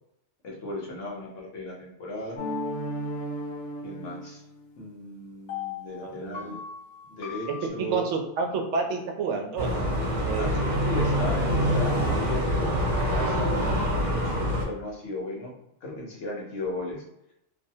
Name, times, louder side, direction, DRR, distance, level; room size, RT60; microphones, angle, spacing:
voice 1, 0.4-2.4 3.8-4.4 4.8-6.6 7.1-8.1 10.4-11.5 11.7-15.5 15.8-17.0, left 1 dB, 85° left, -2 dB, 1.3 m, -36 dB
sound 1, 2.4-4.7 5.5-7.7, left 2 dB, 60° left, 0.9 m, -35 dB
voice 2, 6.0-6.6 7.8-9.9 10.3-10.6, right 4 dB, 75° right, 3 dB, 0.9 m, -30 dB
sound 2, 9.6-14.6, equal, 40° right, 1.0 m, -25 dB
3.2 x 2.1 x 2.7 m, 0.81 s
omnidirectional pair, 1.2 m